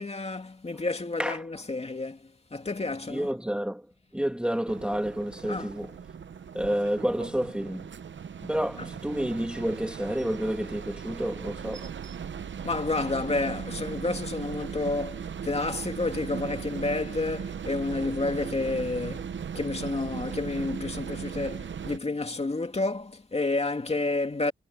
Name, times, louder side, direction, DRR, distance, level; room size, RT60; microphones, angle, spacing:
voice 1, 0.0-3.3 5.5-5.7 12.6-24.5, left 3 dB, 30° left, 2.4 m, -30 dB
voice 2, 3.1-3.9 4.1-5.9 6.5-7.9 8.4-11.9, equal, 5° right, 1.5 m, -29 dB
sound 1, 4.7-22.0, right 7 dB, 65° right, 0.7 m, -38 dB
wide cardioid pair, 130°, 21 cm